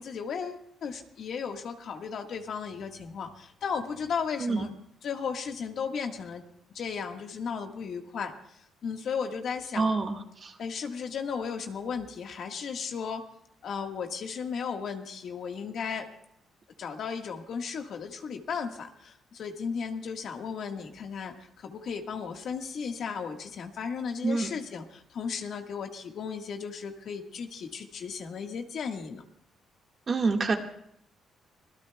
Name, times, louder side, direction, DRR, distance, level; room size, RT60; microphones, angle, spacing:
voice 1, 0.0-4.7 5.0-6.4 6.7-9.9 10.6-13.3 13.6-16.1 16.8-29.2, left 6 dB, 65° left, 4 dB, 1.6 m, -35 dB
voice 2, 9.7-10.5 24.2-24.5 30.1-30.6, right 3 dB, 40° right, 3 dB, 1.7 m, -27 dB
25.0 x 17.0 x 2.3 m, 0.72 s
cardioid pair, 90°, 0 cm